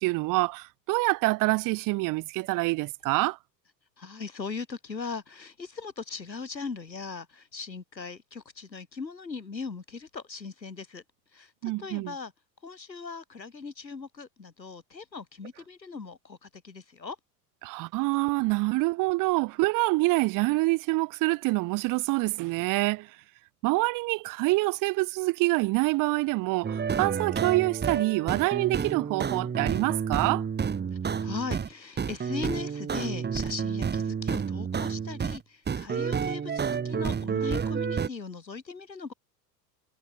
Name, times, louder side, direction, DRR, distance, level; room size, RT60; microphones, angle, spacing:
voice 1, 0.0-3.4 11.6-12.1 17.6-23.1 23.6-30.4, right 22 dB, 40° right, 1.0 m, -26 dB
voice 2, 4.0-11.0 11.3-11.5 11.8-12.3 12.6-17.2 30.9-39.1, left 4 dB, 90° left, 5.6 m, -39 dB
sound 1, 26.6-31.7 32.0-35.4 35.7-38.1, right 6 dB, 20° right, 2.6 m, -30 dB
figure-of-eight pair, 80°, 50 cm